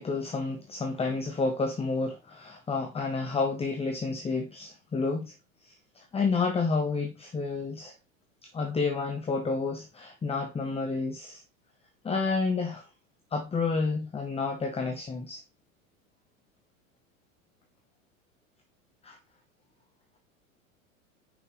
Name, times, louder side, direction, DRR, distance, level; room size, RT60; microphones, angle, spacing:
voice 1, 0.0-5.3 5.6-7.9 8.5-11.4 12.0-12.9 13.3-15.4 19.0-19.2, left 4 dB, 15° left, 1.0 m, -30 dB
6.0 x 6.0 x 3.2 m
hypercardioid pair, 90°, 41 cm